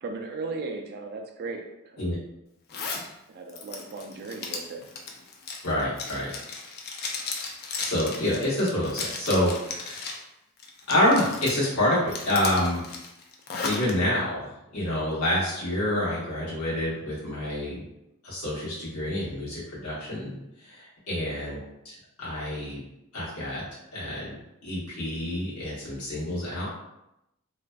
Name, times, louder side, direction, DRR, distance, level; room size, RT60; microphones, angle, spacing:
voice 1, 0.0-1.6 1.9-2.2 3.3-4.8 21.5-21.7, right 3 dB, 45° right, 4 dB, 0.3 m, -36 dB
Zipper (clothing), 2.7-3.1 3.5-10.2 10.6-11.7 12.1-13.9, left 4 dB, 45° left, 0.3 m, -35 dB
voice 2, 5.6-6.3 7.8-10.1 10.9-12.8 13.6-17.8 18.2-21.6 21.8-22.8 23.1-23.6 23.9-24.3 24.6-26.7, left 1 dB, 75° left, -7 dB, 1.1 m, -27 dB
2.5 x 2.2 x 2.2 m, 0.87 s
head